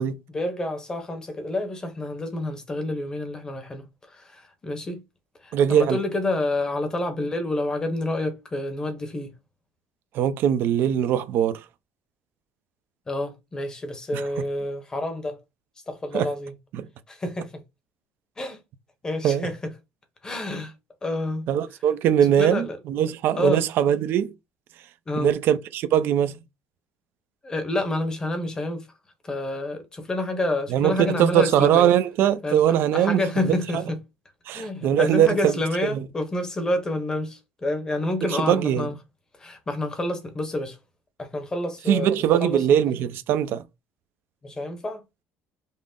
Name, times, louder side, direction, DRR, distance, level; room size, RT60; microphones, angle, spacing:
voice 1, 0.3-5.0 5.4-9.3 13.1-15.4 15.9-16.5 17.1-17.6 18.4-18.6 19.0-19.7 20.2-20.7 21.0-21.5 22.4-22.8 23.3-23.7 25.1-25.3 27.4-28.9 29.2-31.9 32.4-32.6 32.9-34.0 34.5-38.9 39.4-40.8 41.2-42.6 44.4-45.0, left 2 dB, 15° left, 0.9 m, -28 dB
voice 2, 5.5-6.0 10.1-11.6 14.1-14.2 16.1-16.3 16.7-16.9 19.2-19.5 21.5-24.3 25.1-26.4 30.7-33.2 33.4-33.8 34.5-35.5 35.9-36.0 38.4-38.9 41.9-43.6, right 10 dB, 50° right, 0.5 m, -21 dB
5.4 x 2.0 x 3.7 m
cardioid pair, 165°, 5 cm